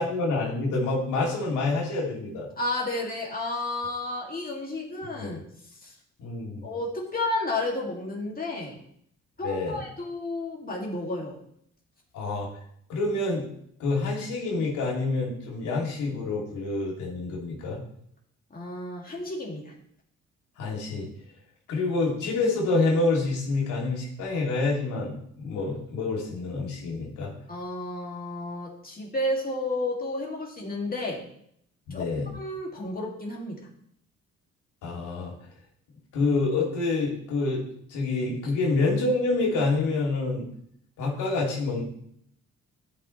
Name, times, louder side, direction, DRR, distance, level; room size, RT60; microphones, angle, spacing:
voice 1, 0.0-2.5 5.1-5.4 6.2-6.6 9.4-9.8 12.1-12.5 12.9-13.5 13.8-17.8 20.6-21.1 21.7-27.3 31.9-32.3 34.8-35.3 36.1-37.6 37.9-40.5 41.0-41.8, left 3 dB, 90° left, -3 dB, 2.9 m, -27 dB
voice 2, 2.6-5.4 5.8-5.9 6.6-8.8 9.4-11.4 18.5-19.7 27.5-31.3 31.9-32.1 32.3-33.6, left 2 dB, 30° left, -2 dB, 2.5 m, -32 dB
12.5 x 5.7 x 3.3 m, 0.70 s
cardioid pair, 90°, 30 cm